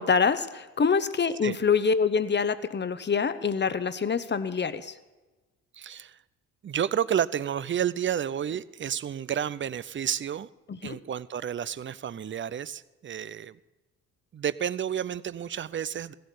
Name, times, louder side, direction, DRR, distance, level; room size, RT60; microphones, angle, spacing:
voice 1, 0.0-5.0 10.7-11.0, left 5 dB, 30° left, 13 dB, 1.1 m, -25 dB
voice 2, 5.7-6.2 6.6-10.5 10.8-13.6 14.3-16.1, right 9 dB, 35° right, 19 dB, 0.6 m, -30 dB
16.0 x 7.8 x 8.4 m, 1.2 s
hypercardioid pair, 50°, 36 cm